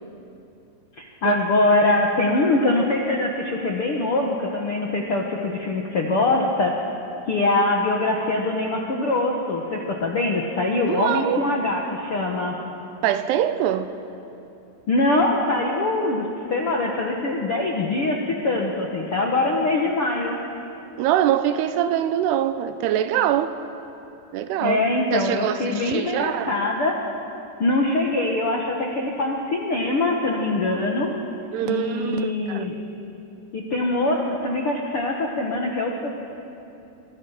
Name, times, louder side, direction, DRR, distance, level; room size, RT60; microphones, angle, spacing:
voice 1, 1.0-6.8 7.3-12.6 14.9-20.4 24.6-27.0 27.6-31.1 31.6-32.7 33.5-36.1, left 2 dB, 65° left, 0 dB, 1.4 m, -23 dB
voice 2, 10.9-11.4 13.0-13.9 21.0-23.5 24.3-24.8 25.1-26.5 31.5-32.6, right 11 dB, 80° right, 11 dB, 2.8 m, -23 dB
25.5 x 24.5 x 5.8 m, 2.9 s
omnidirectional pair, 4.9 m